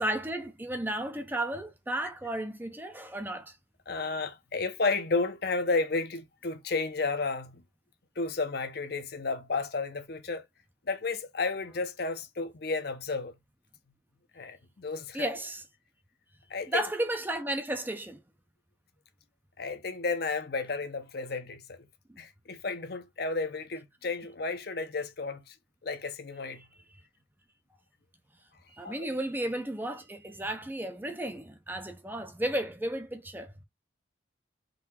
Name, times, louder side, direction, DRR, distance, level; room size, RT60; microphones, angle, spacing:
voice 1, 0.0-3.5 15.1-15.6 16.7-18.2 22.1-22.2 28.7-33.5, right 1 dB, 10° right, 0.5 m, -33 dB
voice 2, 3.9-7.6 8.2-10.4 10.9-13.3 14.3-15.3 16.5-16.9 19.6-21.8 22.2-25.6 25.8-26.6 28.8-29.1, left 3 dB, 55° left, 0.7 m, -32 dB
3.9 x 2.8 x 4.2 m
head